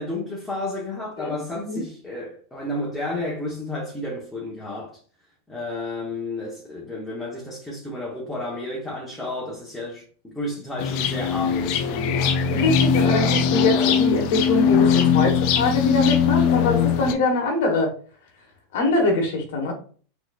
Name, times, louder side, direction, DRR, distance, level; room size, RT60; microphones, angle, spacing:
voice 1, 0.0-5.0 5.5-12.6 12.9-14.0, left 2 dB, 5° left, 1.0 m, -32 dB
voice 2, 1.2-1.8 12.5-17.9 18.7-19.7, left 2 dB, 75° left, 1.2 m, -23 dB
sound 1, 10.8-17.1, left 7 dB, 55° left, 0.4 m, -20 dB
4.0 x 3.1 x 2.4 m
supercardioid pair, 125°, 0 cm